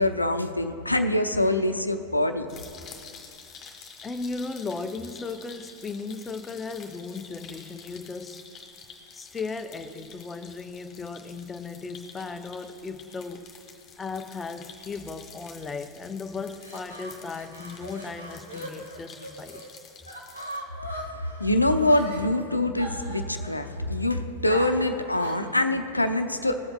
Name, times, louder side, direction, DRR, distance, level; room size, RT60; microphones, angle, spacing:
voice 1, 0.0-2.5 20.9-26.7, left 1 dB, 85° left, 8 dB, 0.6 m, -25 dB
sound 1, 2.5-20.6, left 5 dB, 30° left, 1.5 m, -49 dB
voice 2, 4.0-8.4 9.1-13.5 14.0-19.6, left 4 dB, 15° left, 9 dB, 0.5 m, -36 dB
sound 2, 16.4-19.7 20.1-22.2 22.8-23.8 24.5-25.5, right 1 dB, 85° right, 1.4 m, -39 dB
21.5 x 7.7 x 2.3 m, 2.6 s
figure-of-eight pair, 90°, 0 cm